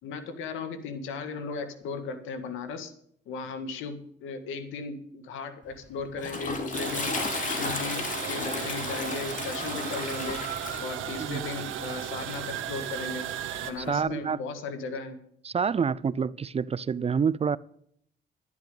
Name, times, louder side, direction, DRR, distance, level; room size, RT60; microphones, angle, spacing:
voice 1, 0.0-2.9 3.3-7.2 7.5-10.4 10.8-13.3 13.6-15.2, left 4 dB, 90° left, 1.9 m, -36 dB
Toilet flush, 5.7-14.0, left 3 dB, 40° left, 2.8 m, -35 dB
sound 1, 6.7-13.7, right 10 dB, 85° right, 1.4 m, -35 dB
voice 2, 13.8-14.4 15.4-17.6, right 6 dB, 30° right, 0.5 m, -27 dB
12.0 x 10.5 x 5.3 m
cardioid pair, 90°, 20 cm